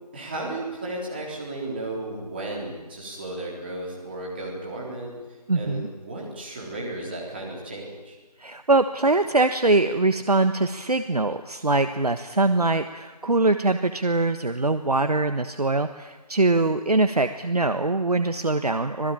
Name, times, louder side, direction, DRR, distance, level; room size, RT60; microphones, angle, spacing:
voice 1, 0.1-5.2 5.5-8.2, right 2 dB, 15° right, -3 dB, 3.8 m, -34 dB
voice 2, 5.5-5.9 8.4-19.1, right 2 dB, 65° right, 9 dB, 1.4 m, -23 dB
26.5 x 19.5 x 9.1 m, 1.2 s
figure-of-eight pair, 170°, 21 cm